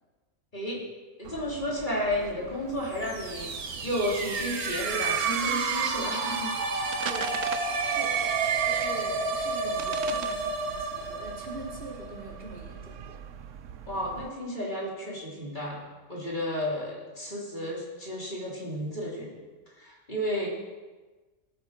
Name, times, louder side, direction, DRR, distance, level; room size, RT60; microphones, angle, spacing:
voice 1, 0.5-0.8 1.2-3.5 3.8-7.0 13.9-15.8 16.1-19.4 19.7-20.5, equal, 30° left, -4 dB, 3.7 m, -32 dB
sound 1, 1.2-14.3, right 11 dB, 65° right, 0.9 m, -36 dB
sound 2, 2.9-12.7, right 3 dB, 85° right, 1.9 m, -31 dB
voice 2, 6.7-7.5 7.8-13.2, right 1 dB, 40° right, -3 dB, 3.4 m, -43 dB
19.5 x 9.0 x 6.6 m, 1.3 s
omnidirectional pair, 1.5 m